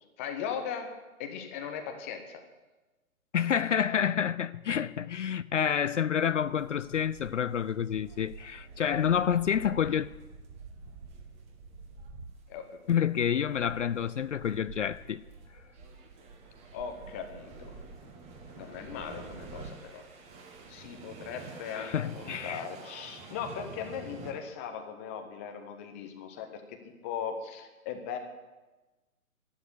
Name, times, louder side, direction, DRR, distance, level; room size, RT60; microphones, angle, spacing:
voice 1, 0.2-0.9 1.2-2.4 12.5-12.7 16.7-17.8 18.6-20.0 20.7-28.2, left 7 dB, 10° left, 0.6 m, -39 dB
voice 2, 3.3-10.1 12.9-15.2 21.7-22.7, left 8 dB, 55° left, 0.5 m, -28 dB
sound 1, 6.2-24.3, right 4 dB, 15° right, 1.3 m, -48 dB
12.0 x 11.0 x 8.2 m
figure-of-eight pair, 130°, 44 cm